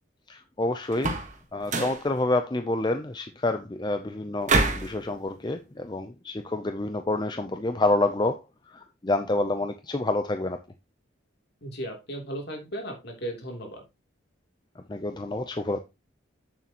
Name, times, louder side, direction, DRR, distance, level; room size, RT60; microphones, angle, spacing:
voice 1, 0.3-1.2 1.5-8.4 8.7-10.6 14.9-15.8, left 2 dB, 20° left, 0.5 m, -28 dB
sound 1, 0.9-1.3 1.6-2.0 4.5-4.9, right 3 dB, 35° right, 1.4 m, -25 dB
voice 2, 11.6-13.8, right 1 dB, 55° left, 3.0 m, -36 dB
8.5 x 7.3 x 2.9 m
head